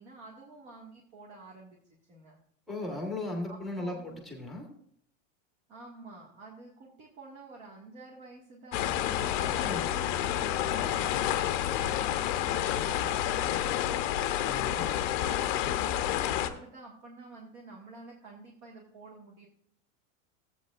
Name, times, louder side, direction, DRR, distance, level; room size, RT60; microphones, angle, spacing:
voice 1, 0.0-1.8 2.1-2.4 3.5-4.1 5.7-14.0 14.7-19.5, right 3 dB, 40° right, -2 dB, 1.9 m, -50 dB
voice 2, 2.7-4.7 9.6-9.9 14.4-14.9, left 2 dB, ahead, 1 dB, 1.4 m, -37 dB
sound 1, 8.7-16.5, left 11 dB, 35° left, 0.7 m, -29 dB
14.0 x 8.5 x 2.5 m, 0.65 s
supercardioid pair, 160°, 39 cm